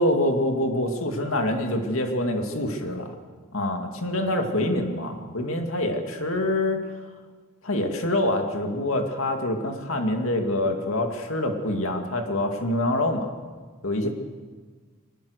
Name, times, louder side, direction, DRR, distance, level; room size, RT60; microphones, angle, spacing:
voice 1, 0.0-3.1 3.5-6.8 7.6-13.3 13.8-14.1, left 1 dB, 75° left, 4 dB, 2.4 m, -25 dB
22.5 x 19.5 x 6.6 m, 1.5 s
head